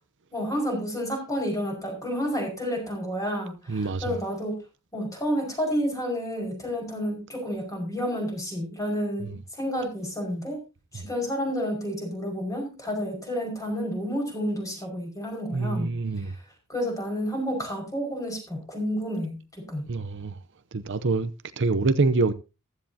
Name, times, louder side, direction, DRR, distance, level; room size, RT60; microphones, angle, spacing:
voice 1, 0.3-4.6 4.9-10.6 10.9-15.9 16.2-19.9, equal, 15° left, 5.6 m, -30 dB
voice 2, 3.7-4.1 9.2-9.3 10.9-11.0 15.5-16.3 19.9-20.4 20.7-22.3, right 3 dB, 60° right, 0.8 m, -26 dB
15.0 x 12.5 x 2.8 m
head